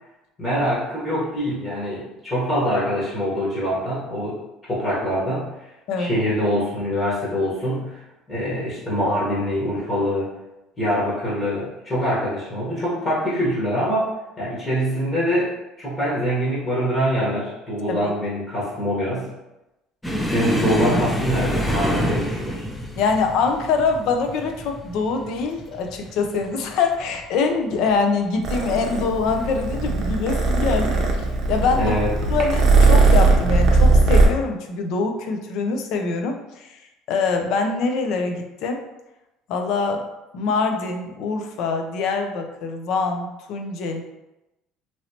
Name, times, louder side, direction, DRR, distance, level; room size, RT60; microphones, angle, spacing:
voice 1, 0.4-4.4 4.7-5.5 6.0-8.0 8.3-10.3 10.8-14.1 14.4-19.3 20.2-22.6 31.8-32.1, equal, 25° left, -8 dB, 1.2 m, -24 dB
sound 1, 20.0-27.3 27.6-27.9 28.3-28.4 29.3-29.8 30.8-31.0 32.4-32.5, equal, 10° left, 0.4 m, -27 dB
voice 2, 23.0-31.9 32.3-36.8 37.1-38.8 39.5-40.1 40.3-44.0, left 4 dB, 65° left, 4 dB, 0.5 m, -24 dB
Purr, 28.4-34.3, right 3 dB, 45° right, 0.6 m, -18 dB
3.0 x 2.8 x 2.8 m, 0.96 s
cardioid pair, 135°, 0 cm